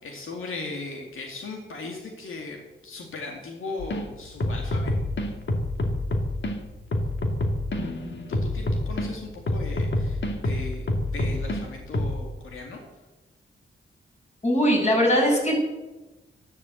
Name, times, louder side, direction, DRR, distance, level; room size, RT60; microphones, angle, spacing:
voice 1, 0.0-2.6 2.8-4.9 8.3-10.9 11.1-12.8, left 3 dB, 85° left, 1 dB, 2.3 m, -37 dB
sound 1, 3.8-4.0 4.4-6.6 6.9-9.1 9.5-11.6 11.9-12.2, left 1 dB, 60° left, 2.2 m, -27 dB
voice 2, 14.4-15.5, equal, 35° left, -2 dB, 6.8 m, -20 dB
12.5 x 12.0 x 7.8 m, 1.1 s
cardioid pair, 95°, 21 cm